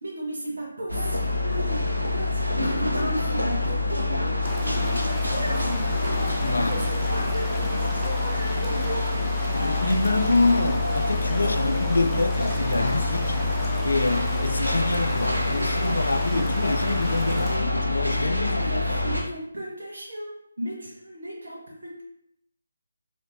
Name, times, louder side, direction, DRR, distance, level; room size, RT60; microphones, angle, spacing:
voice 1, 0.0-5.9 6.4-9.2 18.3-22.0, right 1 dB, 55° right, 1.2 m, -36 dB
sound 1, 0.9-19.2, left 2 dB, 85° right, 0.8 m, -26 dB
sound 2, 4.4-17.6, left 1 dB, 5° left, 0.5 m, -35 dB
voice 2, 6.4-6.7 9.5-13.4 13.8-18.5, left 2 dB, 65° left, 0.4 m, -26 dB
3.6 x 3.3 x 2.7 m
figure-of-eight pair, 150°, 0 cm